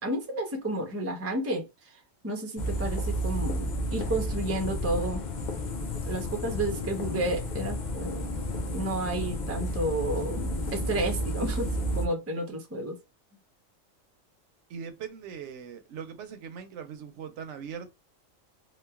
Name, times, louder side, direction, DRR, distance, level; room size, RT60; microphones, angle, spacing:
voice 1, 0.0-5.2 6.0-8.3 8.7-11.7 11.9-13.0, right 1 dB, 25° right, 0.3 m, -31 dB
sound 1, 2.6-12.1, equal, 50° left, 0.5 m, -31 dB
voice 2, 14.7-17.9, right 7 dB, 70° right, 0.8 m, -40 dB
3.0 x 2.1 x 2.3 m
omnidirectional pair, 1.4 m